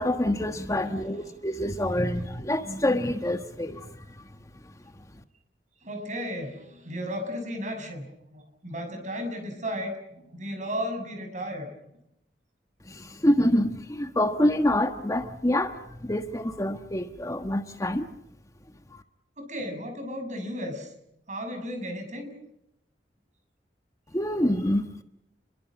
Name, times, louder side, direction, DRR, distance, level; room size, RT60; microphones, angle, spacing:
voice 1, 0.0-3.9 12.9-18.1 24.1-25.0, left 1 dB, 20° left, 1.3 m, -26 dB
voice 2, 0.8-1.3 5.8-11.7 19.4-20.9 21.3-22.3, equal, 45° right, 6.8 m, -35 dB
29.5 x 22.5 x 6.2 m
head